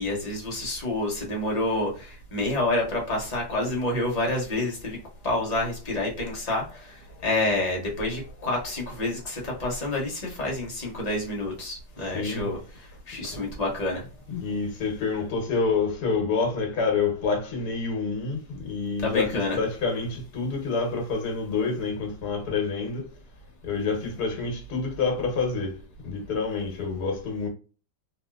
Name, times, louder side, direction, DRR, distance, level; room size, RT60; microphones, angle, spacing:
voice 1, 0.0-5.0 5.2-14.0 19.0-19.6, left 2 dB, 30° left, 0.9 m, -28 dB
voice 2, 12.1-12.5 13.2-13.5 14.3-23.0 23.7-25.8 26.0-27.5, left 4 dB, 70° left, 1.5 m, -28 dB
3.0 x 2.8 x 2.2 m
omnidirectional pair, 1.7 m